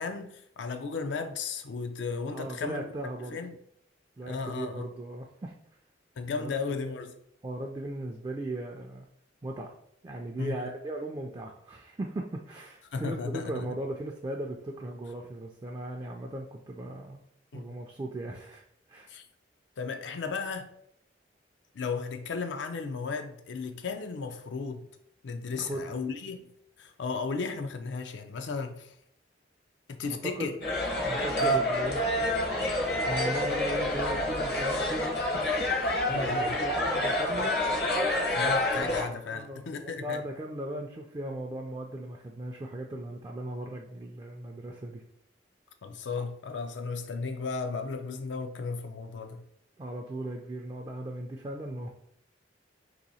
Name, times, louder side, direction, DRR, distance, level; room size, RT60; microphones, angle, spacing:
voice 1, 0.0-2.9 3.3-3.6 4.3-4.9 6.2-7.2 10.4-10.6 12.9-13.7 17.5-17.7 19.1-19.2 19.8-20.7 21.7-24.9 25.2-26.5 26.8-28.9 29.9-30.6 31.4-31.6 36.1-36.6 38.3-40.2 45.8-49.4, left 4 dB, 80° left, 0.5 m, -35 dB
voice 2, 2.3-3.4 4.2-5.6 6.3-6.8 7.4-9.1 9.4-9.7 10.0-17.2 17.5-18.6 18.9-19.1 25.5-26.0 30.2-30.5 31.0-32.0 33.1-35.7 35.9-37.6 39.3-45.0 49.8-51.9, right 1 dB, 25° right, 0.3 m, -37 dB
sound 1, 30.6-39.0, left 1 dB, 60° left, 0.8 m, -28 dB
2.9 x 2.7 x 4.1 m
head